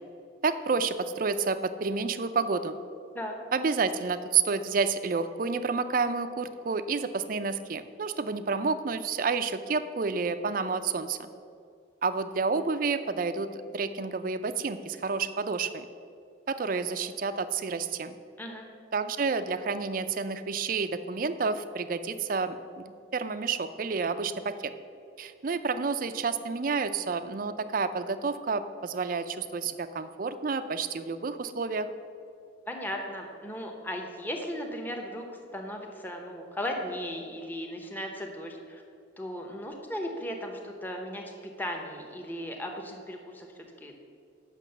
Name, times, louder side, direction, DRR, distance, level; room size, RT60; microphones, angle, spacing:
voice 1, 0.4-2.8 3.5-11.2 12.0-15.9 16.5-18.1 18.9-24.7 25.2-31.9, right 4 dB, 45° right, 11 dB, 0.4 m, -30 dB
voice 2, 32.7-35.3 35.5-38.8 39.2-43.9, equal, 10° left, 1 dB, 0.8 m, -36 dB
8.4 x 6.1 x 6.7 m, 2.5 s
head